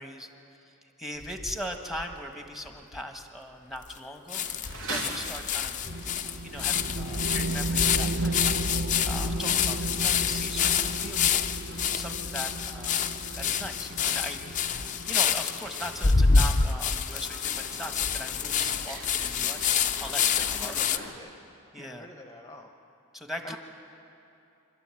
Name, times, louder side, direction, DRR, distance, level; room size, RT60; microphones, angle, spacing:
voice 1, 0.0-4.4 4.9-5.8 6.4-8.7 9.0-11.4 11.9-19.7 20.0-21.0 21.7-22.1 23.1-23.6, equal, ahead, 5 dB, 1.4 m, -40 dB
sound 1, 1.2-2.1 2.7-2.8 2.9-3.0 3.9-4.0 4.3-21.0, left 6 dB, 35° left, 0.6 m, -27 dB
sound 2, 4.3-21.1, right 2 dB, 65° right, 3.3 m, -44 dB
sound 3, 5.9-15.9, right 2 dB, 50° right, 0.9 m, -34 dB
voice 2, 20.3-21.3 21.7-22.7 23.4-23.6, left 1 dB, 15° left, 3 dB, 1.0 m, -45 dB
27.0 x 12.5 x 9.0 m, 2.8 s
head